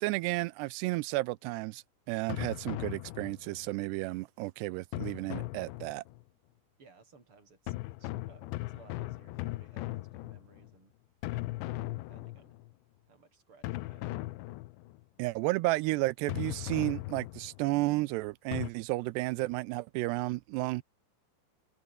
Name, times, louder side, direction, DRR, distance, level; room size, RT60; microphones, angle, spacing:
voice 1, 0.0-6.0 15.2-20.8, right 21 dB, 85° right, 2.6 m, -32 dB
sound 1, 2.3-3.7 4.9-6.2 7.7-10.8 11.2-12.7 13.6-15.0 16.3-17.7 18.5-18.7, left 19 dB, 85° left, 3.1 m, -38 dB
voice 2, 6.8-7.7 8.0-10.9 11.2-11.5 12.1-12.5 13.1-14.0, right 4 dB, 30° right, 7.1 m, -60 dB
open air
omnidirectional pair, 5.0 m